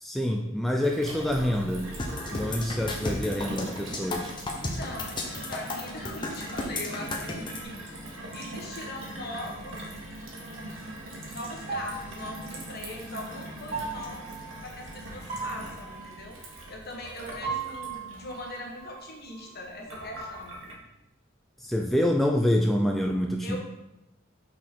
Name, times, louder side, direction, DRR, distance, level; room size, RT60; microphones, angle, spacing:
voice 1, 0.0-2.0 2.3-4.3 21.6-23.6, left 1 dB, ahead, 1 dB, 0.3 m, -26 dB
Gurgling / Water tap faucet / Sink (filling or washing), 0.8-20.7, right 1 dB, 80° right, 1.4 m, -41 dB
sound 1, 2.0-7.6, left 2 dB, 25° left, 0.8 m, -33 dB
voice 2, 4.6-7.8 8.3-9.8 11.3-14.3 14.6-20.6 23.4-23.6, left 1 dB, 50° left, 0 dB, 1.3 m, -40 dB
sound 2, 8.3-10.0 11.7-13.3 13.7-17.1 17.4-19.6, right 5 dB, 30° right, 1.4 m, -39 dB
5.8 x 4.1 x 4.5 m, 0.92 s
head